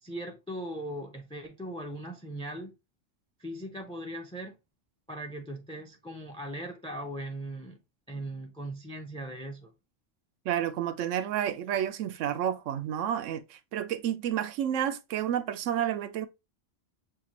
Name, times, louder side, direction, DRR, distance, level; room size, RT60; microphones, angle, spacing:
voice 1, 0.0-2.7 3.4-4.6 5.1-7.8 8.1-9.7, right 1 dB, 5° left, 0.5 m, -39 dB
voice 2, 10.4-16.3, right 10 dB, 90° right, 0.9 m, -30 dB
6.5 x 2.4 x 2.9 m
omnidirectional pair, 1.2 m